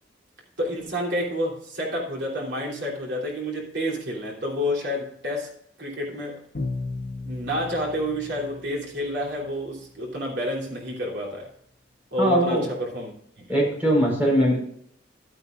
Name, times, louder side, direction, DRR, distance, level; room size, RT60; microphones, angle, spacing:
voice 1, 0.6-5.5 5.8-6.4 7.2-11.5 12.1-13.4, equal, 65° right, -2 dB, 3.3 m, -29 dB
Bowed string instrument, 6.5-9.4, left 3 dB, 55° left, 1.6 m, -35 dB
voice 2, 12.2-12.6 13.5-14.6, equal, 10° right, -2 dB, 4.5 m, -20 dB
12.0 x 9.2 x 2.5 m, 0.68 s
head